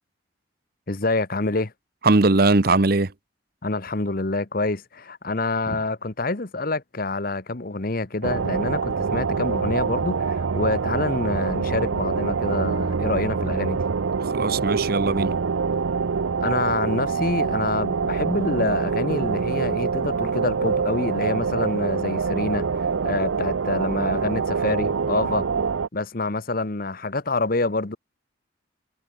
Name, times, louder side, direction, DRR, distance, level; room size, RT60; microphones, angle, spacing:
voice 1, 0.9-1.7 3.6-13.8 16.4-25.5 25.9-28.0, left 2 dB, 45° left, 1.1 m, -27 dB
voice 2, 2.0-3.1 5.7-5.8 14.2-15.4, right 3 dB, 50° right, 1.0 m, -20 dB
sound 1, 8.2-25.9, right 5 dB, 80° right, 0.6 m, -25 dB
head